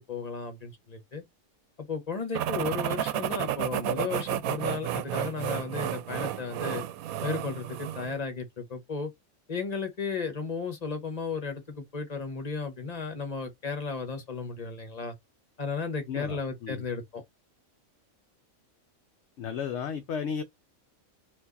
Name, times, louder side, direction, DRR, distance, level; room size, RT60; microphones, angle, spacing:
voice 1, 0.1-1.2 1.8-6.8 7.2-9.1 9.5-15.1 15.6-17.2, left 4 dB, 30° left, 1.2 m, -34 dB
sound 1, 2.3-8.2, right 12 dB, 85° right, 1.0 m, -32 dB
voice 2, 16.1-16.8 19.4-20.4, left 7 dB, 65° left, 0.8 m, -34 dB
4.5 x 2.6 x 4.0 m
omnidirectional pair, 1.4 m